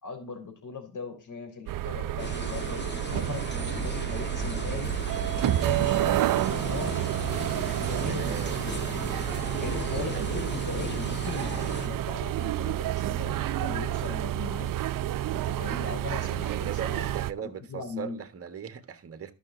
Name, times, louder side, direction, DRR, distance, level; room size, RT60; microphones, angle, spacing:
voice 1, 0.0-4.9 5.3-7.0 7.3-8.8 9.6-14.7 15.3-17.1 17.4-18.2, left 5 dB, 50° left, 4.0 m, -39 dB
sound 1, 1.7-17.3, right 13 dB, 55° right, 0.6 m, -29 dB
sound 2, 2.2-11.9, left 3 dB, 25° left, 1.8 m, -38 dB
voice 2, 7.9-9.0 9.3-9.5 10.0-10.3 16.3-19.3, right 7 dB, 35° right, 1.6 m, -39 dB
12.5 x 6.1 x 3.9 m
cardioid pair, 80°, 40 cm